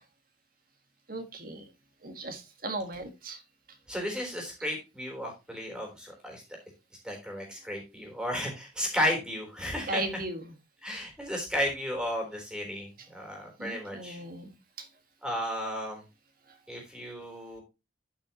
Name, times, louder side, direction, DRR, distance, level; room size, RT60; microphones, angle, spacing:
voice 1, 1.1-1.6 2.0-3.4 9.9-10.4 13.6-14.5 14.8-14.9, right 2 dB, 50° right, 7 dB, 1.7 m, -36 dB
voice 2, 3.9-6.4 7.0-10.0 10.8-12.9 13.1-14.2 15.2-16.0 16.7-17.6, equal, 5° right, 1 dB, 3.6 m, -33 dB
11.5 x 5.8 x 2.9 m, 0.26 s
head